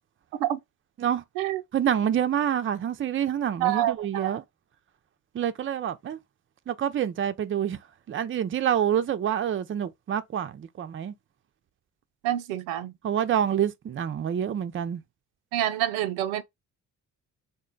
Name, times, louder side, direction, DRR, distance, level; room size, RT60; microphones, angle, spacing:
voice 1, 1.7-4.4 5.3-6.2 6.7-7.8 8.1-11.1 13.0-15.0, right 9 dB, 30° right, 0.5 m, -27 dB
voice 2, 3.6-4.4 12.2-12.9 15.5-16.4, right 12 dB, 75° right, 0.6 m, -27 dB
3.7 x 2.2 x 3.8 m
hypercardioid pair, 45°, 45 cm